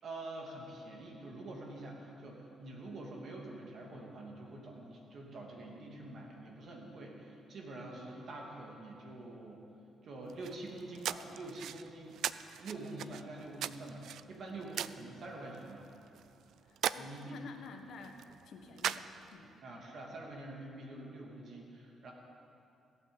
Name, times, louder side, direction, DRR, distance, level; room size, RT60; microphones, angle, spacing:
voice 1, 0.0-9.6 10.0-12.2 12.6-15.9 17.0-17.4 19.6-22.1, right 2 dB, 55° right, -1 dB, 2.8 m, -46 dB
sound 1, 10.3-19.6, right 10 dB, 75° right, 0.3 m, -42 dB
voice 2, 16.9-18.2 18.4-19.5, left 5 dB, 70° left, 4 dB, 1.4 m, -50 dB
16.0 x 9.0 x 7.3 m, 2.6 s
cardioid pair, 95°, 0 cm